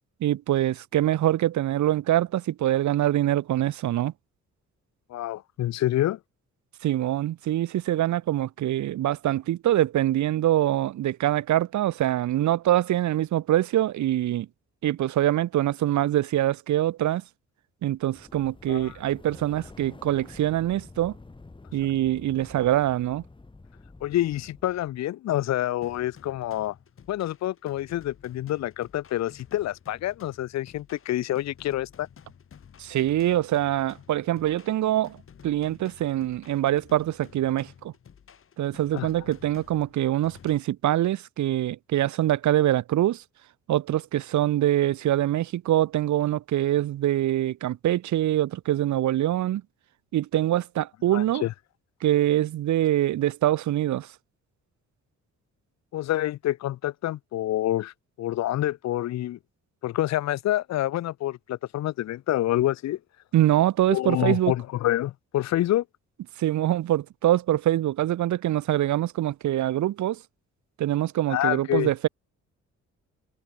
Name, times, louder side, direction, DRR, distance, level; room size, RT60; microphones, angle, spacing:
voice 1, 0.2-4.1 6.8-14.5 14.8-17.2 17.8-21.1 21.7-23.2 32.8-35.2 35.4-37.9 38.6-43.2 43.7-49.6 50.1-51.4 52.0-54.1 63.3-64.5 66.4-70.2 70.8-72.1, right 13 dB, 80° right, 1.2 m, -24 dB
voice 2, 5.1-6.2 18.7-19.0 24.0-26.7 27.1-32.1 38.9-39.1 51.1-51.5 55.9-59.4 59.8-63.0 63.9-65.8 71.3-71.9, left 14 dB, 65° left, 0.7 m, -27 dB
sound 1, 18.0-25.0, left 3 dB, 15° left, 6.8 m, -48 dB
sound 2, 25.8-40.6, left 7 dB, 45° left, 7.0 m, -52 dB
wide cardioid pair, 155°, 29 cm